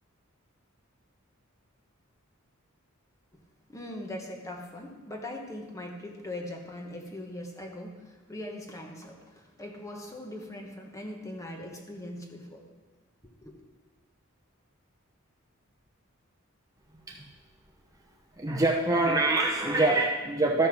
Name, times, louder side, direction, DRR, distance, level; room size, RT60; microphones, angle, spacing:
voice 1, 3.7-12.6 13.4-13.5, left 1 dB, 15° left, 2 dB, 1.2 m, -40 dB
voice 2, 18.4-20.7, right 2 dB, 15° right, -1 dB, 0.8 m, -24 dB
13.5 x 5.6 x 6.0 m, 1.3 s
head